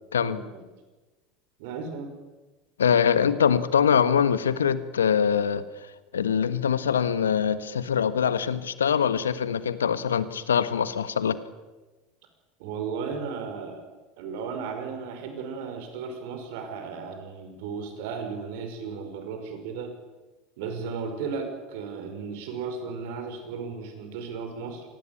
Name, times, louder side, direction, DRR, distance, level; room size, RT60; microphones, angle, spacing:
voice 1, 1.6-2.1 12.6-13.8 14.2-20.0 20.6-24.8, right 5 dB, 65° right, 7 dB, 5.6 m, -35 dB
voice 2, 2.8-5.6 6.1-11.4, left 7 dB, 80° left, 14 dB, 1.3 m, -23 dB
26.0 x 19.5 x 8.7 m, 1.2 s
hypercardioid pair, 75°, 0 cm